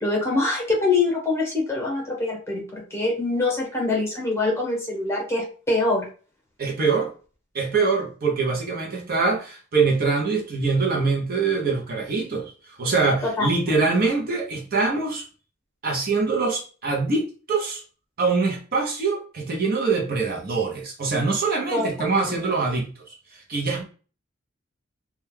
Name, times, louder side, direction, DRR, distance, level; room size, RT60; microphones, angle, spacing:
voice 1, 0.0-6.1 13.2-13.5 21.7-21.9 22.2-22.5, left 3 dB, 15° left, -1 dB, 0.9 m, -24 dB
voice 2, 6.6-7.1 7.5-15.2 15.8-17.8 18.2-22.9 23.5-23.8, right 4 dB, 45° right, 0 dB, 0.6 m, -24 dB
2.2 x 2.2 x 3.1 m, 0.37 s
head